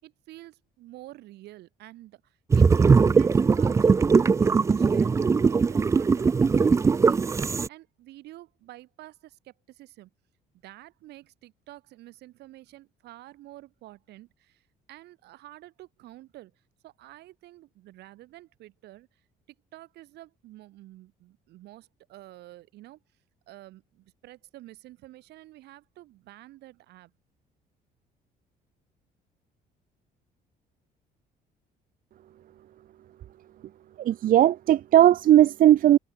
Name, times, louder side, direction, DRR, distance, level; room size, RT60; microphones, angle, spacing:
voice 1, 0.0-2.9 3.1-7.2 7.7-10.1 10.6-16.5 16.8-19.1 19.7-23.0 23.5-27.1, right 16 dB, 80° right, 7.3 m, -49 dB
sound 1, 2.5-7.7, right 5 dB, 15° right, 0.3 m, -20 dB
voice 2, 34.0-36.0, right 12 dB, 55° right, 0.7 m, -17 dB
cardioid pair, 110°, 17 cm